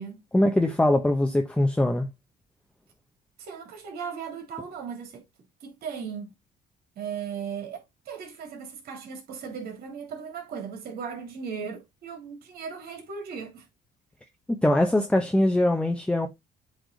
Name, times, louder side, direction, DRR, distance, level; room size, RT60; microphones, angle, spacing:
voice 1, 0.3-2.1 14.5-16.3, left 1 dB, 5° left, 0.8 m, -22 dB
voice 2, 3.4-5.2 5.6-6.3 7.0-13.7, right 6 dB, 65° right, 2.5 m, -37 dB
7.8 x 3.4 x 3.9 m
cardioid pair, 110°, 17 cm